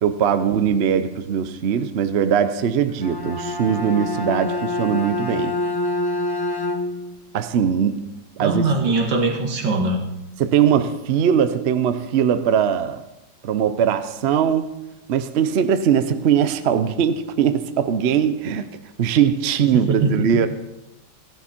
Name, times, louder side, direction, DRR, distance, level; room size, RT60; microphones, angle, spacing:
voice 1, 0.0-5.6 7.3-8.1 8.4-8.6 10.4-13.0 13.4-14.7 15.1-18.7 19.0-20.5, right 8 dB, 60° right, 0.6 m, -20 dB
Bowed string instrument, 2.9-7.2, left 2 dB, 30° left, 0.4 m, -26 dB
voice 2, 8.4-10.1 19.6-20.3, right 3 dB, 80° right, 2.5 m, -22 dB
16.0 x 11.5 x 4.3 m
omnidirectional pair, 2.0 m